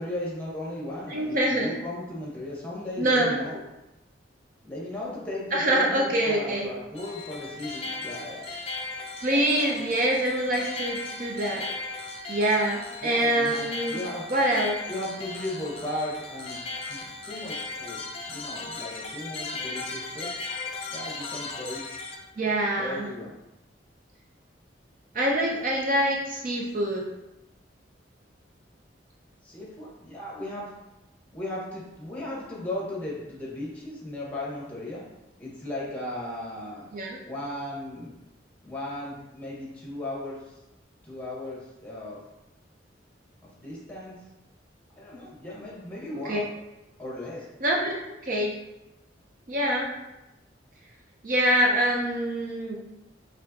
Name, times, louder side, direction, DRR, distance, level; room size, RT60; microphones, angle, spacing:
voice 1, 0.0-3.6 4.6-8.5 13.0-14.4 14.9-20.3 20.9-21.8 22.8-23.4 29.4-30.7 31.3-35.0 35.4-36.9 37.2-38.1 38.6-40.5 41.0-42.2 43.6-44.2 45.0-46.5 47.0-47.5, left 1 dB, 10° left, -5 dB, 1.2 m, -36 dB
voice 2, 1.1-1.7 3.0-3.3 5.5-6.7 9.2-11.7 12.3-14.0 14.3-14.7 22.4-23.1 25.1-27.0 36.9-37.2 46.3-46.4 47.6-48.0 48.2-48.5 49.5-49.9 51.2-52.8, right 1 dB, 45° right, -1 dB, 0.6 m, -25 dB
sound 1, 6.9-22.2, left 3 dB, 30° left, 0.5 m, -37 dB
5.3 x 3.3 x 2.7 m, 0.96 s
head